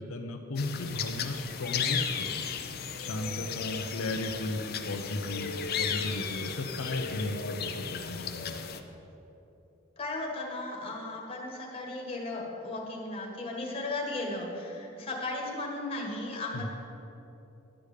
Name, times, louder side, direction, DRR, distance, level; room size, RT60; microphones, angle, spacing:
voice 1, 0.0-2.3 3.0-8.6 16.5-16.7, left 2 dB, 85° left, 4 dB, 0.7 m, -35 dB
sound 1, 0.6-8.8, left 7 dB, 50° left, 0.6 m, -35 dB
voice 2, 10.0-16.7, left 2 dB, 30° left, -1 dB, 1.7 m, -36 dB
11.5 x 5.0 x 8.4 m, 2.9 s
head